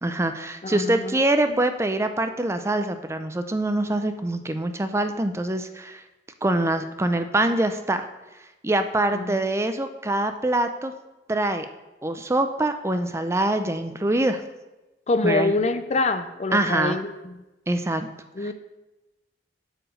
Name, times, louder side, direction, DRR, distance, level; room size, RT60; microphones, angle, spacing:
voice 1, 0.0-6.0 6.4-8.1 8.6-10.9 11.3-11.7 12.0-14.4 15.2-15.5 16.5-17.0 17.7-18.1 18.4-18.5, right 1 dB, 15° right, 8 dB, 0.5 m, -24 dB
voice 2, 0.6-1.6 9.1-9.4 15.1-17.3 18.3-18.5, left 3 dB, 40° left, 11 dB, 0.4 m, -26 dB
7.8 x 4.8 x 6.4 m, 1.0 s
head